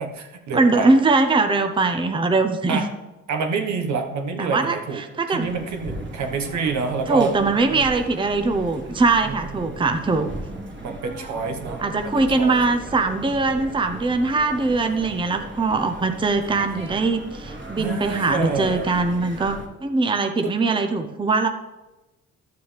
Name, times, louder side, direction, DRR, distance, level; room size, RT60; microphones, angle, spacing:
voice 1, 0.0-1.0 2.7-2.9 3.3-7.9 9.2-10.0 10.8-12.6 17.8-18.9 20.4-20.5, right 4 dB, 70° right, 4 dB, 1.4 m, -28 dB
voice 2, 0.5-2.8 4.4-5.5 7.1-10.3 11.8-21.5, right 3 dB, 15° right, 6 dB, 0.7 m, -21 dB
sound 1, 5.4-19.7, right 1 dB, 40° right, 1.7 m, -37 dB
12.0 x 6.8 x 3.4 m, 1.1 s
cardioid pair, 90°, 30 cm